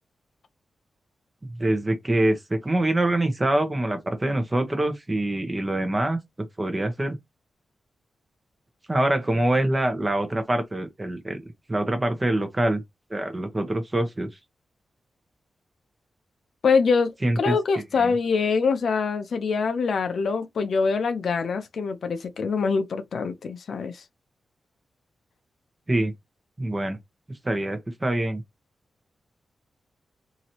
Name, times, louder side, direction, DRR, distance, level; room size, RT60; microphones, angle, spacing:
voice 1, 1.6-6.2 6.6-7.2 8.9-11.4 11.7-12.8 13.1-14.3 17.2-17.6 18.0-18.1 25.9-26.1 26.6-27.0 27.4-28.4, right 1 dB, 20° right, 0.9 m, -24 dB
voice 2, 16.6-17.1 17.4-24.0, left 5 dB, 75° left, 0.6 m, -24 dB
3.0 x 2.7 x 2.8 m
wide cardioid pair, 100°, 0 cm